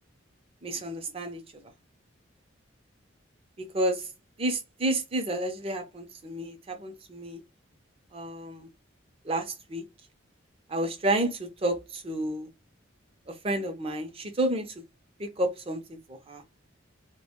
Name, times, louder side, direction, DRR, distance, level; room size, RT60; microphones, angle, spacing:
voice 1, 0.6-1.4 3.6-4.1 4.4-7.4 8.1-8.7 9.2-9.8 10.7-12.5 13.4-14.7 15.2-16.4, right 1 dB, 30° right, 0.5 m, -30 dB
2.4 x 2.2 x 2.9 m
head